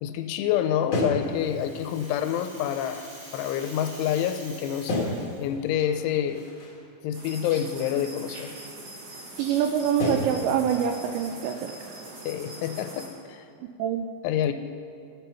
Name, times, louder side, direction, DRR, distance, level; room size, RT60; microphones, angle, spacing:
voice 1, 0.0-5.0 5.4-6.4 7.0-8.5 12.3-13.4 14.2-14.5, left 10 dB, 85° left, 8 dB, 2.9 m, -27 dB
sound 1, 0.9-2.3 2.8-4.5 4.9-6.8 7.1-8.4 8.8-8.9 9.4-9.6 10.0-10.5 10.9-11.3 11.7-12.2, left 1 dB, 45° left, 1.4 m, -34 dB
Rattle (instrument), 0.9-5.7, right 1 dB, 40° right, 4.3 m, -46 dB
sound 2, 7.1-13.1, right 2 dB, 65° right, 4.6 m, -42 dB
voice 2, 9.4-11.7 13.8-14.1, right 8 dB, 85° right, 4 dB, 2.6 m, -25 dB
17.0 x 7.3 x 5.6 m, 2.4 s
omnidirectional pair, 5.6 m